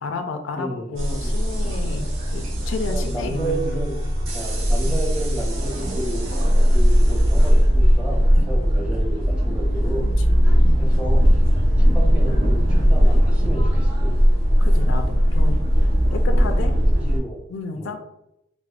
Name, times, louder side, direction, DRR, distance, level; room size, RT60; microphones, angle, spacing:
voice 1, 0.0-4.3 4.8-5.0 8.3-8.5 10.0-10.9 14.6-15.6 16.1-16.7 17.5-18.0, left 4 dB, 70° left, 6 dB, 0.4 m, -32 dB
voice 2, 0.6-1.4 2.9-4.0 4.3-8.2 8.5-10.0 10.8-11.2 11.9-12.6 12.9-14.2 16.3-16.5 17.1-17.4 17.7-18.0, right 1 dB, 5° right, -2 dB, 0.6 m, -32 dB
sound 1, 1.0-17.2, equal, 85° right, 0.8 m, -18 dB
4.7 x 2.0 x 2.4 m, 0.83 s
head